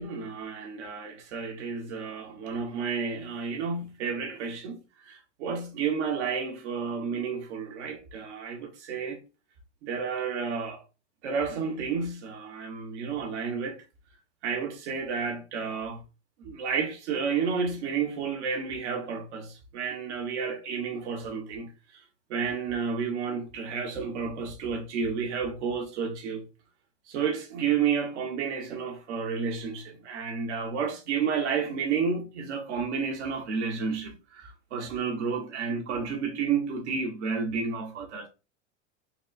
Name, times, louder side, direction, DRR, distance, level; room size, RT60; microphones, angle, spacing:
voice 1, 0.0-9.2 9.8-10.8 11.2-13.8 14.4-16.0 16.4-22.0 22.3-26.4 27.1-38.3, right 6 dB, 85° right, 1.2 m, -31 dB
4.1 x 3.0 x 2.5 m
supercardioid pair, 160°, 34 cm